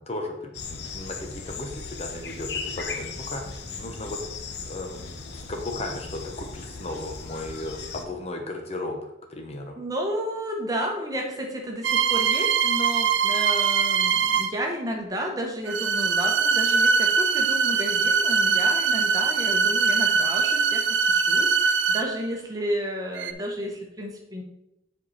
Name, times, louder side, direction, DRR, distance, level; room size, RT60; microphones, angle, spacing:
voice 1, 0.0-9.8, left 2 dB, 35° left, 3 dB, 0.9 m, -36 dB
sound 1, 0.5-8.0, left 4 dB, 65° left, 0.8 m, -37 dB
voice 2, 9.8-24.4, equal, 20° right, 1 dB, 1.1 m, -32 dB
sound 2, 11.8-14.7 15.7-22.3 23.1-23.3, right 5 dB, 85° right, 0.5 m, -22 dB
7.8 x 4.6 x 4.1 m, 0.83 s
head